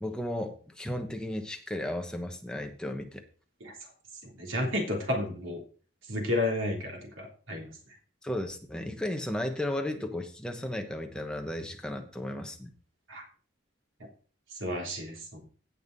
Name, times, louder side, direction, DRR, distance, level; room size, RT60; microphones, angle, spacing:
voice 1, 0.0-3.2 8.2-12.7, left 1 dB, 5° left, 4 dB, 1.1 m, -34 dB
voice 2, 4.4-5.6 6.1-7.7 13.1-13.2 14.6-15.5, left 1 dB, 80° right, 1 dB, 3.4 m, -31 dB
16.5 x 5.6 x 4.1 m, 0.41 s
head